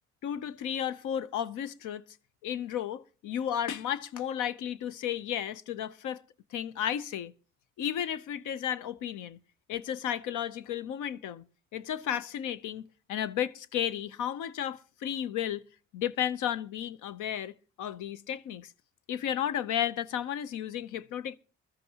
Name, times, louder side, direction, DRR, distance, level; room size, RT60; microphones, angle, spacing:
voice 1, 0.2-2.0 2.4-6.2 6.5-7.3 7.8-9.4 9.7-11.5 11.7-15.6 15.9-18.7 19.1-21.4, left 10 dB, 85° left, 0.7 m, -33 dB
21.0 x 13.0 x 2.9 m
cardioid pair, 90°, 30 cm